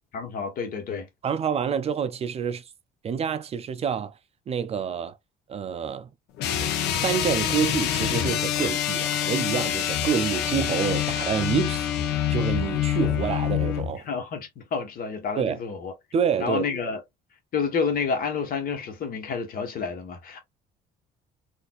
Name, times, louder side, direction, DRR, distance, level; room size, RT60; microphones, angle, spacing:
voice 1, 0.1-1.1 13.9-15.9 16.4-17.0 17.5-20.4, left 5 dB, 60° left, 1.3 m, -29 dB
voice 2, 1.2-2.7 3.0-4.2 4.5-5.2 5.5-6.1 6.6-6.7 7.0-14.0 15.4-15.6 16.1-16.7, right 7 dB, 40° right, 0.4 m, -27 dB
sound 1, 6.4-13.9, left 10 dB, 80° left, 0.7 m, -26 dB
4.0 x 2.6 x 2.4 m
cardioid pair, 110°, 17 cm